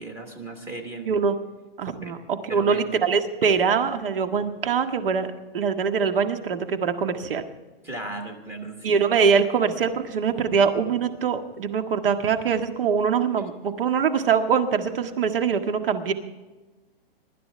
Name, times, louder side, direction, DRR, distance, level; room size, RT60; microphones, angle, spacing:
voice 1, 0.0-1.1 2.0-2.2 2.5-3.0 7.8-9.0, right 2 dB, 10° right, 5 dB, 1.1 m, -36 dB
voice 2, 1.1-1.4 1.8-7.4 8.8-16.1, right 6 dB, 65° right, 7 dB, 1.7 m, -23 dB
24.0 x 12.5 x 3.4 m, 1.2 s
hypercardioid pair, 175°, 30 cm